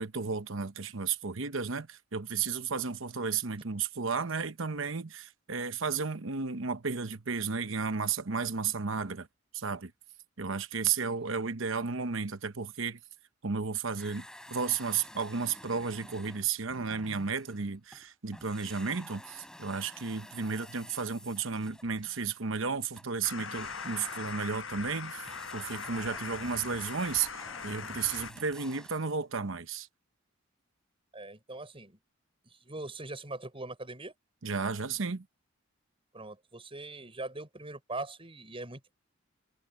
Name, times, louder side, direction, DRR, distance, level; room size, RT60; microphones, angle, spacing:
voice 1, 0.0-9.3 9.5-9.9 10.4-13.0 13.4-29.9 34.4-35.3, right 5 dB, 70° right, 1.0 m, -33 dB
sound 1, 14.0-18.1 18.3-29.1, left 1 dB, 5° left, 6.9 m, -51 dB
sound 2, 23.2-28.3, left 5 dB, 75° left, 7.3 m, -41 dB
voice 2, 31.1-32.0 32.5-34.1 36.1-38.9, right 2 dB, 25° right, 6.3 m, -41 dB
head